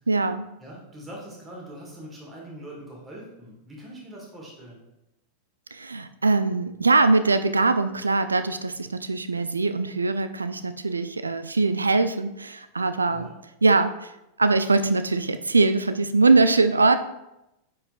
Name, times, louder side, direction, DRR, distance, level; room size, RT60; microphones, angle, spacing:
voice 1, 0.1-0.5 5.7-13.3 13.6-14.1 14.4-17.0, right 3 dB, 80° right, 11 dB, 0.3 m, -22 dB
voice 2, 0.6-4.8 13.1-13.4, right 1 dB, 20° right, -3 dB, 1.8 m, -42 dB
9.5 x 4.7 x 2.4 m, 0.89 s
figure-of-eight pair, 90°, 0 cm